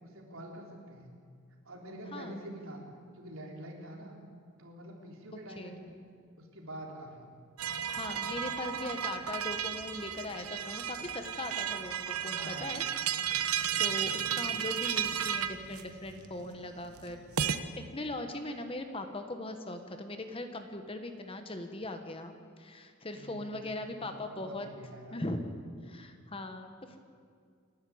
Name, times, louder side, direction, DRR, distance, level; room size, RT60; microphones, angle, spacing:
voice 1, 0.0-1.1 1.6-2.8 3.1-4.2 4.6-6.0 6.4-7.3 12.3-12.8 13.7-14.1 23.1-23.7 24.0-25.2, right 1 dB, 65° right, 0 dB, 4.0 m, -46 dB
sound 1, 7.6-17.6, right 8 dB, 85° right, 1.0 m, -34 dB
voice 2, 7.9-12.8 13.2-17.2 17.5-24.7 25.1-25.4 25.8-27.0, left 2 dB, 25° left, 6 dB, 1.3 m, -40 dB
28.5 x 11.5 x 8.7 m, 2.1 s
head